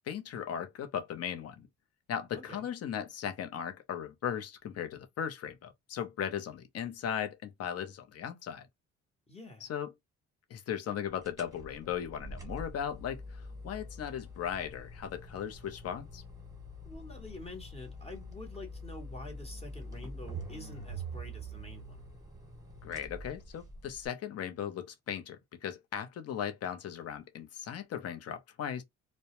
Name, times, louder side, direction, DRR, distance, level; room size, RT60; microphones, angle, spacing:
voice 1, 0.1-1.7 2.1-8.7 9.6-9.9 10.5-16.2 22.8-28.8, left 9 dB, 55° left, 0.6 m, -37 dB
voice 2, 2.3-2.7 9.3-9.7 16.8-22.0, left 1 dB, 20° left, 0.9 m, -47 dB
sound 1, 11.2-24.1, right 1 dB, 10° right, 1.1 m, -45 dB
2.2 x 2.1 x 2.8 m
cardioid pair, 90°, 30 cm